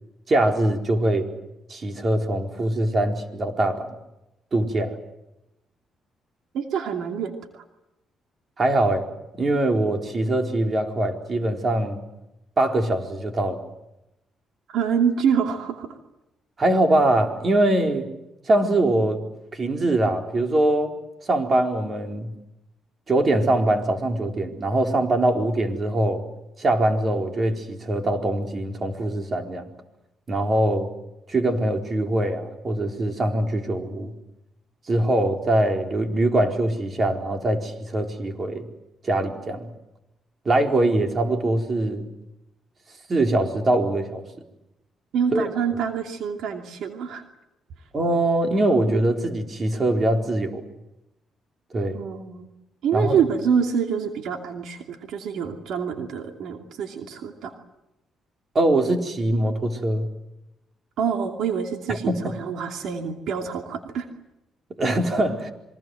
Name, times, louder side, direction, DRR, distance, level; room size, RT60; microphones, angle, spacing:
voice 1, 0.3-1.3 1.7-3.9 4.5-4.9 8.6-9.1 9.4-12.0 12.6-13.6 16.6-18.1 18.5-19.2 19.5-20.9 21.2-22.3 23.1-26.2 26.6-29.6 30.3-30.9 31.3-34.1 34.9-38.6 39.0-39.7 40.4-42.1 43.1-44.2 45.3-45.5 47.9-50.6 51.7-52.0 52.9-53.2 58.5-60.1 61.9-62.2 64.8-65.5, right 1 dB, 40° right, 4 dB, 4.3 m, -22 dB
voice 2, 6.5-7.6 14.7-15.9 45.1-47.2 51.9-52.5 52.8-57.5 61.0-64.1, right 7 dB, 75° right, 4 dB, 2.7 m, -26 dB
27.5 x 24.0 x 7.9 m, 0.91 s
cardioid pair, 90°, 0 cm